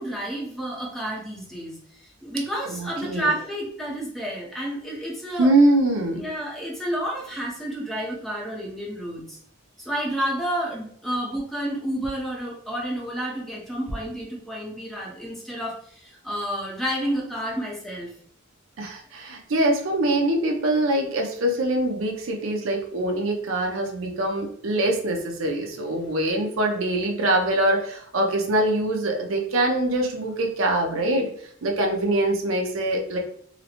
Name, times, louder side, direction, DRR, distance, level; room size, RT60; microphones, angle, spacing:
voice 1, 0.0-5.5 6.2-9.4 9.8-18.1, right 1 dB, ahead, -3 dB, 0.7 m, -30 dB
voice 2, 2.7-3.3 5.4-6.3 18.8-31.3 31.6-33.2, right 1 dB, 75° right, 2 dB, 0.6 m, -23 dB
4.0 x 2.1 x 2.9 m, 0.62 s
head